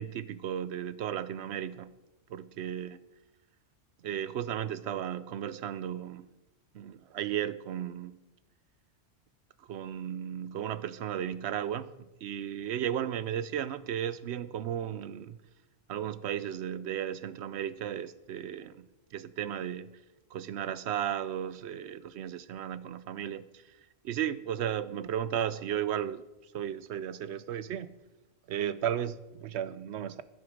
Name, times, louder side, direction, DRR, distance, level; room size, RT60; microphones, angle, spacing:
voice 1, 0.0-1.9 2.3-3.0 4.0-6.3 6.7-8.2 9.7-15.4 15.9-19.9 20.3-23.8 24.0-28.0 28.5-30.2, right 10 dB, 70° right, 0.8 m, -35 dB
12.5 x 10.5 x 5.0 m
omnidirectional pair, 1.3 m